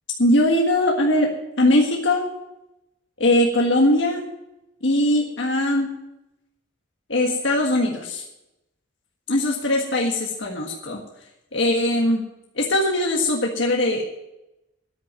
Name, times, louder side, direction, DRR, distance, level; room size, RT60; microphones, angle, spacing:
voice 1, 0.2-2.2 3.2-4.2 4.8-5.9 7.1-8.2 9.3-11.0 11.5-12.2 12.5-14.0, left 1 dB, 70° left, -1 dB, 1.6 m, -20 dB
10.5 x 8.3 x 9.3 m, 0.91 s
head